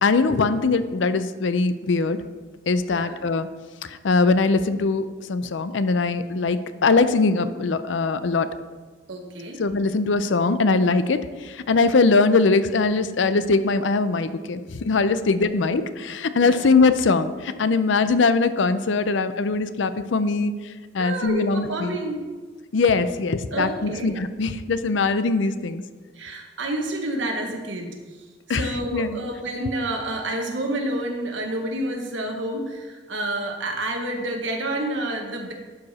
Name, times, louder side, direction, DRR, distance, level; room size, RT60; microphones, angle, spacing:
voice 1, 0.0-2.2 2.7-3.5 3.9-8.5 9.6-20.5 20.9-22.0 22.7-25.8 28.5-29.2, left 3 dB, 80° left, 12 dB, 0.5 m, -21 dB
voice 2, 9.1-9.6 16.4-16.6 21.0-22.2 23.5-24.2 26.2-27.9 28.5-35.5, right 1 dB, 85° right, 3 dB, 1.2 m, -29 dB
11.0 x 4.9 x 4.2 m, 1.4 s
head